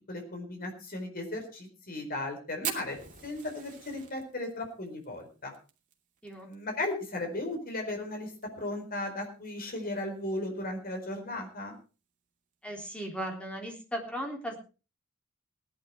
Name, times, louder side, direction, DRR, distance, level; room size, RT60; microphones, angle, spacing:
voice 1, 0.1-3.0 3.2-5.5 6.3-11.7, left 2 dB, 45° left, 4 dB, 4.6 m, -36 dB
Fire, 2.6-7.1 7.4-7.5 7.8-7.9 8.2-8.7 9.2-9.3 10.3-10.5, right 9 dB, 40° right, 2.7 m, -41 dB
voice 2, 6.2-6.5 12.6-14.6, equal, 5° left, 1 dB, 3.5 m, -37 dB
18.0 x 11.0 x 4.6 m, 0.35 s
head